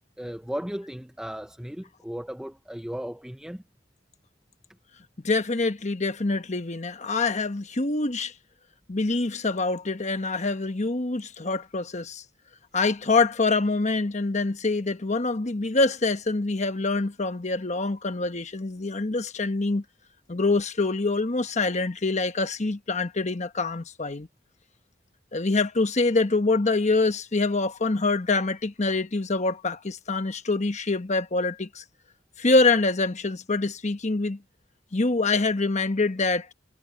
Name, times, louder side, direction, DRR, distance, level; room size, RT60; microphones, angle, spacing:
voice 1, 0.2-3.6, equal, 5° right, 0.6 m, -35 dB
voice 2, 5.2-8.3 8.9-12.2 12.7-19.8 20.3-24.3 25.3-31.8 32.4-34.4 34.9-36.5, left 3 dB, 35° left, 1.1 m, -25 dB
head